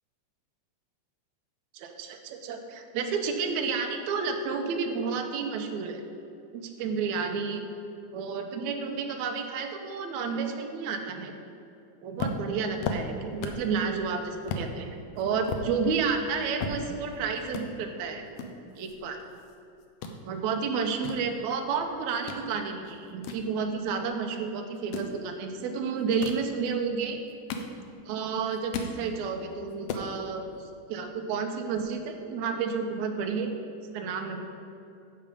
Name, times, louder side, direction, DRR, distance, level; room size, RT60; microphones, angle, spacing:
voice 1, 1.7-6.0 6.5-7.6 8.1-11.3 12.0-18.3 18.8-19.2 20.3-27.2 28.1-30.4 30.9-33.5 33.9-34.4, right 5 dB, 75° right, 4 dB, 2.1 m, -31 dB
sound 1, 12.2-13.7 14.1-14.2 14.5-14.7 15.2-17.2 17.5-17.7 18.4-19.6 19.8-20.2 20.7-22.4 22.8-24.1 24.8-25.2 26.0-26.5 27.1-28.1 28.4-29.0 29.4-29.5 29.7-30.1, left 4 dB, 75° left, 1.5 m, -35 dB
10.0 x 6.8 x 5.2 m, 2.6 s
omnidirectional pair, 3.5 m